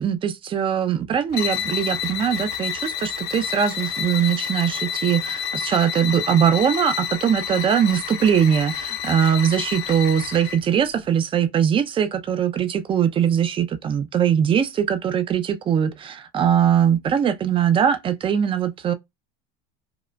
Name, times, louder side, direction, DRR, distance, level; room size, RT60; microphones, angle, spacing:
voice 1, 0.0-18.9, right 8 dB, 25° right, 0.5 m, -21 dB
sound 1, 1.3-10.7, left 9 dB, 50° left, 0.7 m, -29 dB
4.8 x 2.1 x 2.2 m
supercardioid pair, 120°, 20 cm